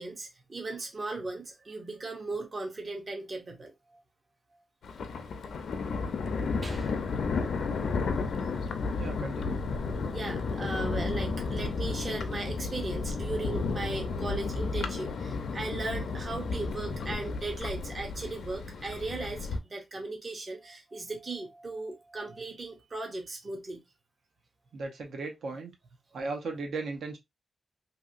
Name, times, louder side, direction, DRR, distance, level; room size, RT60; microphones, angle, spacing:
voice 1, 0.0-4.0 6.6-7.0 10.1-23.8, right 2 dB, 30° right, 0.6 m, -37 dB
Thunder, 4.8-19.6, left 4 dB, 70° left, 0.5 m, -33 dB
voice 2, 8.8-9.6 24.7-25.7 26.1-27.2, right 3 dB, 75° right, 0.7 m, -37 dB
2.9 x 2.8 x 2.4 m
wide cardioid pair, 180°, 0 cm